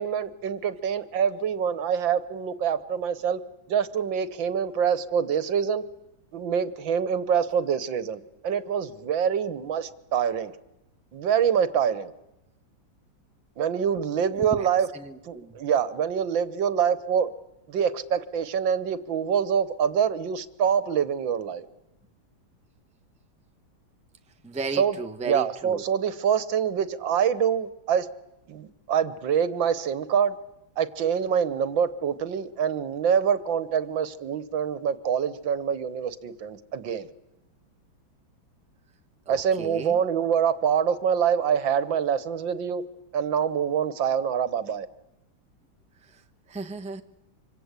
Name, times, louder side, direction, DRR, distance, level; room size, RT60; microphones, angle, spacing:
voice 1, 0.0-3.4 3.7-5.8 6.3-10.6 11.1-12.1 13.6-14.9 15.3-17.3 17.7-21.7 24.7-28.1 28.5-30.4 30.8-37.1 39.3-42.8 43.1-44.9, right 8 dB, 70° right, 1.8 m, -25 dB
voice 2, 14.9-15.5 24.4-25.8 39.3-40.0 46.5-47.0, right 3 dB, 5° right, 0.9 m, -35 dB
25.5 x 25.5 x 8.2 m
omnidirectional pair, 2.2 m